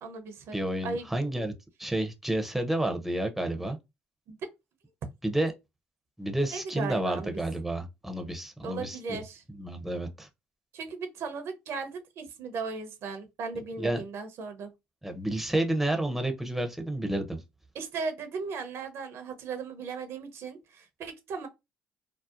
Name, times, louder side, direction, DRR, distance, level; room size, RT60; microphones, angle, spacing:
voice 1, 0.0-0.6 0.8-1.1 4.3-4.4 6.5-7.4 8.6-9.4 10.7-14.7 17.7-21.5, right 4 dB, 65° right, 0.6 m, -37 dB
voice 2, 0.5-1.5 1.8-3.8 5.2-5.5 6.2-9.2 9.6-10.3 13.8-14.0 15.0-17.4, right 1 dB, 5° right, 0.6 m, -30 dB
2.7 x 2.0 x 2.4 m
supercardioid pair, 65°, 5 cm